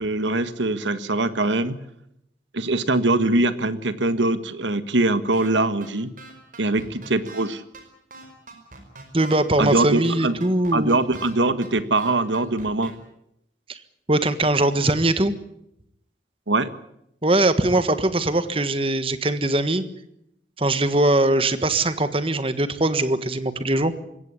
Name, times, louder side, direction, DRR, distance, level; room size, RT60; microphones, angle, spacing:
voice 1, 0.0-1.8 2.5-6.1 6.6-7.6 9.6-10.3 10.7-12.9 16.5-16.7, right 2 dB, 80° right, 12 dB, 1.6 m, -22 dB
sound 1, 5.3-5.5 5.8-5.9 6.2-7.4 7.7-7.8 8.1-9.4 9.7-9.8 10.0-11.3 11.6-11.7 12.0-12.9, right 3 dB, 45° right, 4.9 m, -42 dB
voice 2, 9.1-11.0 13.7-13.8 14.1-15.3 17.2-19.8 20.6-23.9, right 2 dB, 30° right, 11 dB, 1.5 m, -21 dB
21.5 x 17.0 x 9.8 m, 0.78 s
head